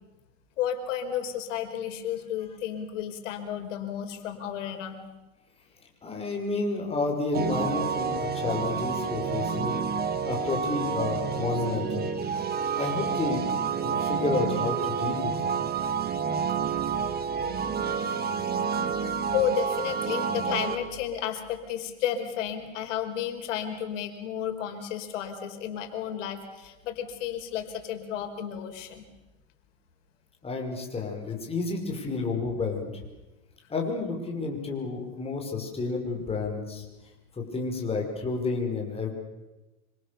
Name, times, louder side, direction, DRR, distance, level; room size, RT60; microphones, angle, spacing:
voice 1, 0.6-5.0 17.4-17.8 19.3-29.0, left 9 dB, 80° left, 5 dB, 4.9 m, -32 dB
voice 2, 6.0-12.1 12.8-13.4 13.8-15.5 30.4-32.9 33.7-36.9 37.3-39.1, left 3 dB, 15° left, 2 dB, 5.6 m, -30 dB
sound 1, 7.3-20.8, right 6 dB, 25° right, 2.1 m, -29 dB
27.0 x 25.5 x 7.0 m, 1.1 s
supercardioid pair, 140°, 37 cm